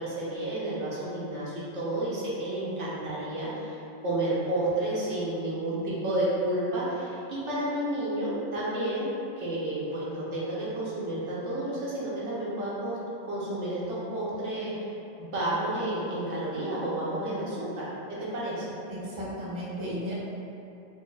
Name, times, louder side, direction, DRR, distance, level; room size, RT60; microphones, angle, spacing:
voice 1, 0.0-13.0 13.3-14.7 15.2-18.6, right 1 dB, 80° right, -8 dB, 1.1 m, -31 dB
voice 2, 18.9-20.1, equal, 30° right, -8 dB, 0.7 m, -34 dB
4.5 x 2.7 x 2.3 m, 2.8 s
omnidirectional pair, 1.2 m